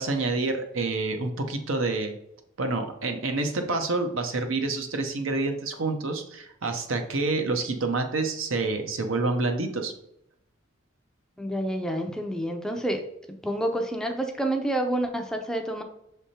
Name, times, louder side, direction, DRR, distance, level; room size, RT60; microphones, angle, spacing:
voice 1, 0.0-2.1 2.6-9.9, right 3 dB, 75° right, 5 dB, 0.9 m, -28 dB
voice 2, 11.4-13.0 13.3-15.8, right 1 dB, 5° left, 4 dB, 0.5 m, -28 dB
6.2 x 3.5 x 4.3 m, 0.78 s
head